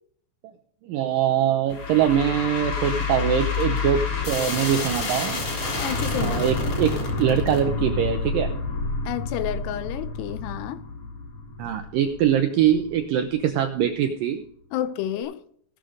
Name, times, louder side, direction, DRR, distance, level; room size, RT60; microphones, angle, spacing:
voice 1, 0.8-5.4 6.2-8.5 11.6-14.4, right 9 dB, 85° right, 2.0 m, -23 dB
sound 1, 1.7-13.0, left 3 dB, 45° left, 4.1 m, -28 dB
voice 2, 5.8-6.4 9.1-10.8 14.7-15.4, left 12 dB, 80° left, 2.7 m, -30 dB
18.0 x 6.4 x 4.9 m
omnidirectional pair, 4.9 m